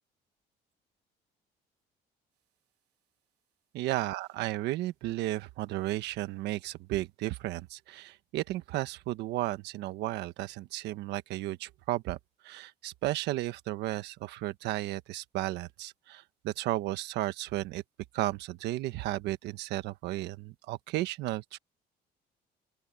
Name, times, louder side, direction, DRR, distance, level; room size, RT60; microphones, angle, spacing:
voice 1, 3.7-12.2 12.4-17.8 18.1-21.6, right 16 dB, 85° right, 1.3 m, -34 dB
open air
cardioid pair, 110°, 17 cm